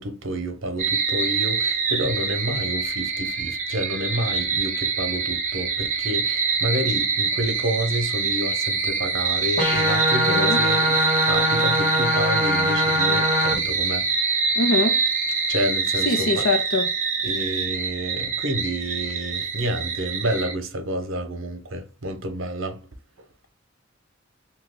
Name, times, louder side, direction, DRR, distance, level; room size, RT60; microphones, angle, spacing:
voice 1, 0.0-14.1 15.5-16.5 17.2-22.9, right 1 dB, 70° right, 0.8 m, -29 dB
sound 1, 0.8-20.5, right 5 dB, 40° right, 0.6 m, -25 dB
sound 2, 9.6-13.5, equal, 40° left, 1.0 m, -22 dB
voice 2, 10.3-10.6 14.6-15.0 16.0-16.9, left 3 dB, 80° left, 0.7 m, -23 dB
3.0 x 2.3 x 3.4 m
head